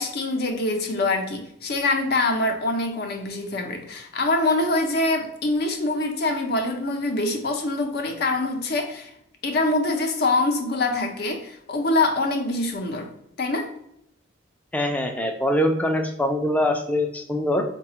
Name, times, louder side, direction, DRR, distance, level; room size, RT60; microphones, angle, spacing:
voice 1, 0.0-9.1 9.4-13.1 13.4-13.7, left 2 dB, 55° left, 4 dB, 0.5 m, -24 dB
voice 2, 14.7-17.6, left 1 dB, 5° left, 4 dB, 0.3 m, -23 dB
4.0 x 2.3 x 2.8 m, 0.77 s
head